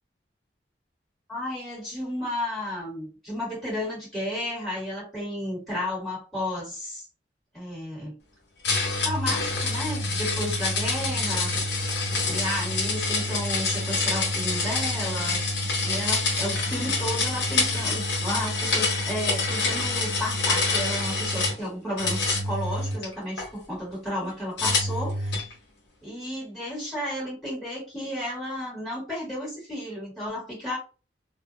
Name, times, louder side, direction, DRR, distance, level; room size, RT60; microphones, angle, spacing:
voice 1, 1.3-7.0 7.5-8.1 9.0-11.5 12.3-15.4 15.8-25.4 26.0-30.8, left 1 dB, ahead, 1.3 m, -32 dB
sound 1, 8.6-21.6 22.0-23.5 24.6-25.5, left 3 dB, 75° left, 0.8 m, -26 dB
2.2 x 2.1 x 2.6 m
head